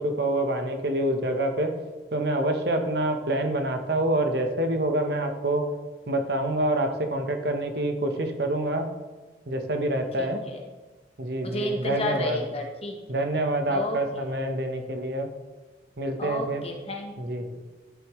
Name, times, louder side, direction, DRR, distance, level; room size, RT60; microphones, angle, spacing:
voice 1, 0.0-1.7 2.1-5.7 6.1-8.9 9.5-10.4 11.2-12.4 13.1-15.3 16.0-16.6 17.2-17.4, right 1 dB, 60° right, 5 dB, 1.0 m, -26 dB
voice 2, 10.2-10.6 11.4-13.0 13.7-14.3 16.2-17.6, left 1 dB, 30° left, 2 dB, 1.1 m, -32 dB
11.5 x 7.1 x 3.1 m, 1.2 s
head